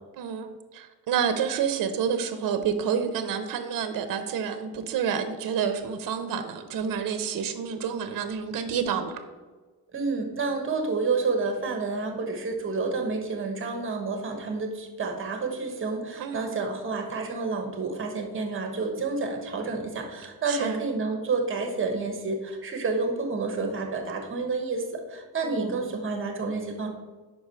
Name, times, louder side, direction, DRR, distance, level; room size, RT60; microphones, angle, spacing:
voice 1, 0.2-0.5 0.7-9.2 16.2-16.6 20.5-20.8 25.4-25.8, right 7 dB, 65° right, 9 dB, 0.7 m, -29 dB
voice 2, 9.9-26.9, right 3 dB, 35° right, 4 dB, 1.2 m, -29 dB
5.4 x 4.7 x 5.6 m, 1.3 s
cardioid pair, 125°, 36 cm